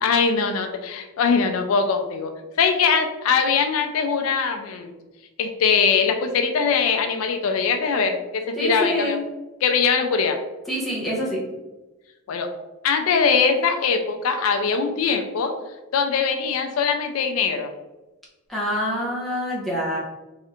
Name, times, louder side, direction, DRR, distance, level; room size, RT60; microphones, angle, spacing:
voice 1, 0.0-2.3 2.6-4.9 5.4-9.2 9.6-10.4 12.3-12.5 12.8-15.5 15.9-17.7, left 5 dB, 80° left, 6 dB, 0.4 m, -22 dB
voice 2, 8.6-9.3 10.7-11.4 18.5-20.0, equal, ahead, -6 dB, 0.7 m, -26 dB
3.2 x 2.4 x 2.8 m, 1.1 s
head